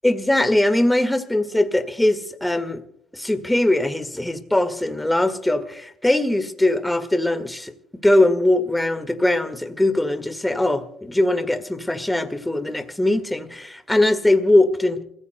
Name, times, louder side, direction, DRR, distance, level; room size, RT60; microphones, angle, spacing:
voice 1, 0.0-2.8 3.1-7.7 8.0-15.0, left 1 dB, 10° left, 10 dB, 1.7 m, -21 dB
28.5 x 15.5 x 2.2 m, 0.69 s
supercardioid pair, 60°, 0 cm